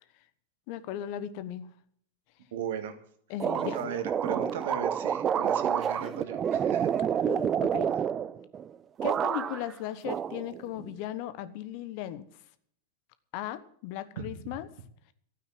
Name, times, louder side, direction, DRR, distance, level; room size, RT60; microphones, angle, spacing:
voice 1, 0.7-1.7 3.3-3.9 7.2-7.9 9.0-12.3 13.3-14.7, left 12 dB, 50° left, 13 dB, 1.1 m, -37 dB
voice 2, 2.5-3.0 3.5-6.9 14.2-14.3, right 7 dB, 65° right, 8 dB, 2.2 m, -36 dB
sound 1, 3.4-8.7 9.0-9.7 10.0-10.9, right 8 dB, 25° right, 0.6 m, -29 dB
12.5 x 9.1 x 7.7 m, 0.62 s
figure-of-eight pair, 95°, 0 cm